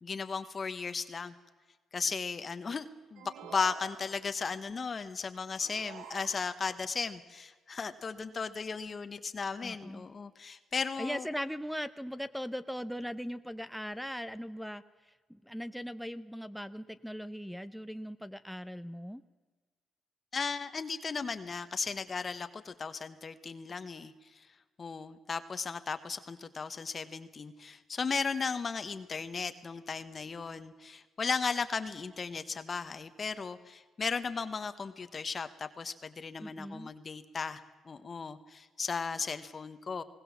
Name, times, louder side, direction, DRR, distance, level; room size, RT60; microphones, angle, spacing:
voice 1, 0.0-1.3 1.9-11.3 20.3-24.5 24.8-40.0, left 5 dB, 40° left, 10 dB, 1.1 m, -36 dB
sound 1, 3.2-4.5 5.6-6.9, right 8 dB, 90° right, 1.1 m, -49 dB
voice 2, 9.6-10.1 11.0-14.8 15.3-19.2 36.4-36.9, equal, ahead, 9 dB, 0.8 m, -39 dB
20.0 x 18.5 x 7.3 m, 1.4 s
cardioid pair, 95°, 0 cm